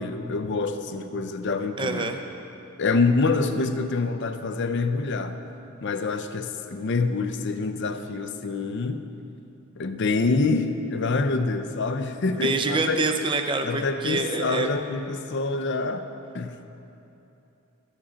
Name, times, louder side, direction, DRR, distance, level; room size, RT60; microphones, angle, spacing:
voice 1, 0.0-2.1 2.8-5.4 5.8-9.0 9.8-13.0 13.6-16.0 16.3-16.6, left 3 dB, 55° left, 9 dB, 0.5 m, -26 dB
voice 2, 1.8-2.2 12.4-14.7, right 3 dB, 25° right, 6 dB, 0.5 m, -26 dB
12.5 x 7.3 x 5.1 m, 2.9 s
head